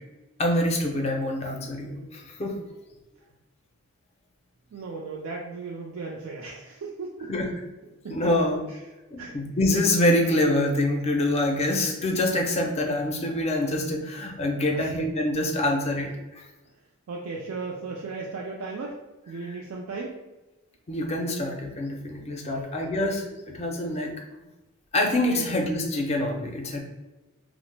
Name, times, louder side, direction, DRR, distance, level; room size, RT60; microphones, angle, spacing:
voice 1, 0.4-2.6 7.3-7.7 8.0-8.6 9.1-16.4 20.9-24.1 24.9-26.8, left 1 dB, 30° left, 2 dB, 0.4 m, -25 dB
voice 2, 4.7-7.5 8.0-8.3 8.7-8.8 9.2-9.4 14.7-14.9 17.1-20.2 22.5-23.0 25.3-25.5, right 3 dB, 75° right, -1 dB, 0.4 m, -36 dB
2.8 x 2.0 x 3.2 m, 1.1 s
head